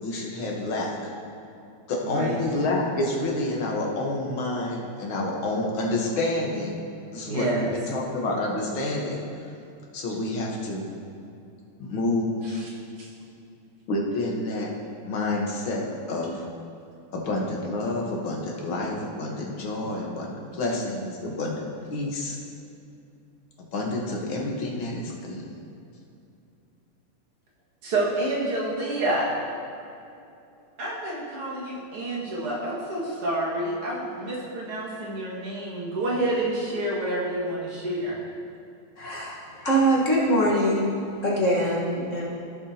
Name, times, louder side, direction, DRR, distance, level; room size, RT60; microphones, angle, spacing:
voice 1, 0.0-0.9 1.9-6.8 7.1-9.2 9.9-10.9 11.8-12.6 13.9-14.7 15.1-15.8 16.1-16.4 17.1-21.6 21.9-22.4 23.7-25.4, left 2 dB, 65° left, -1 dB, 1.9 m, -28 dB
voice 2, 2.0-2.4 7.3-7.7 12.4-12.7 13.0-13.1 27.8-29.3 30.8-38.2, right 1 dB, 85° right, -5 dB, 2.8 m, -28 dB
voice 3, 39.0-40.9 41.2-42.3, right 1 dB, 40° left, -5 dB, 1.6 m, -23 dB
15.5 x 7.1 x 2.8 m, 2.6 s
omnidirectional pair, 2.4 m